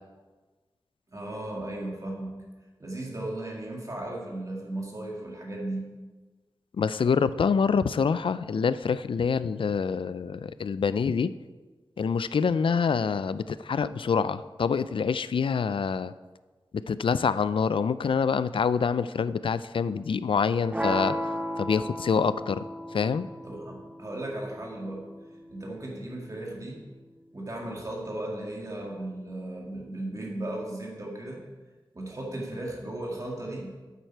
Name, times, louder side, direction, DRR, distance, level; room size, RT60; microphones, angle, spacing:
voice 1, 1.1-2.4 2.8-5.9 23.4-25.0 25.5-26.8 27.3-31.4 31.9-33.8, right 1 dB, 40° right, -2 dB, 2.3 m, -36 dB
voice 2, 6.7-11.3 12.0-16.1 16.9-21.2 21.6-22.6 22.9-23.3, left 6 dB, 75° left, 15 dB, 0.4 m, -26 dB
sound 1, 20.7-26.8, equal, 15° right, 0.9 m, -35 dB
8.8 x 8.1 x 4.6 m, 1.3 s
wide cardioid pair, 75°, 9 cm